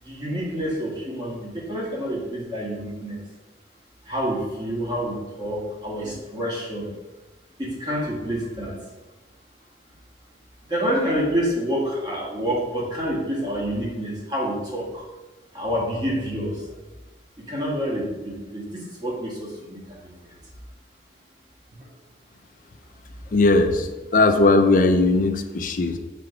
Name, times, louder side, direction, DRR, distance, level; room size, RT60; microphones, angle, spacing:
voice 1, 0.0-3.2 4.0-6.9 7.6-8.8 10.7-15.1 15.5-16.6 17.4-20.3 23.3-23.4, equal, 25° right, -4 dB, 1.5 m, -28 dB
voice 2, 23.3-26.0, left 2 dB, 50° left, 8 dB, 0.5 m, -18 dB
5.9 x 3.4 x 4.9 m, 1.2 s
head